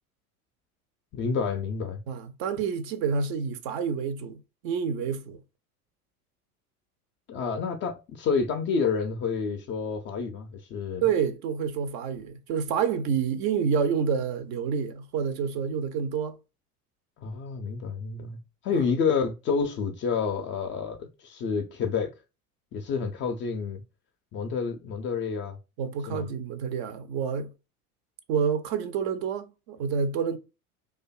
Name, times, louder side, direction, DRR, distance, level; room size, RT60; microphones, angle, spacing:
voice 1, 1.1-2.0 7.3-11.0 17.2-22.1 22.7-23.8 24.3-25.6 26.1-26.3, left 5 dB, 30° left, 0.3 m, -29 dB
voice 2, 2.1-5.4 11.0-16.4 18.7-18.8 25.8-27.5 28.3-30.4, right 6 dB, 50° right, 0.5 m, -28 dB
2.5 x 2.3 x 2.3 m
figure-of-eight pair, 70°, 45 cm